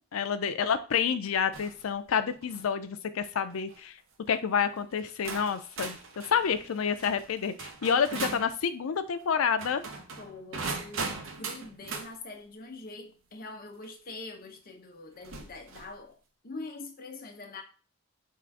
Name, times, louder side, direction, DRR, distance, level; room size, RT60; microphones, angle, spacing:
voice 1, 0.1-4.0 4.3-9.8, left 7 dB, 80° left, 0.4 m, -29 dB
sound 1, 1.5-1.8 2.3-2.7 3.5-3.8 4.6-4.7 5.2-8.5 9.5-12.1 13.8-13.9 15.2-15.9, right 4 dB, 70° right, 0.7 m, -39 dB
voice 2, 10.2-16.2 16.4-17.6, left 3 dB, 45° left, 0.8 m, -44 dB
3.7 x 2.5 x 4.6 m
head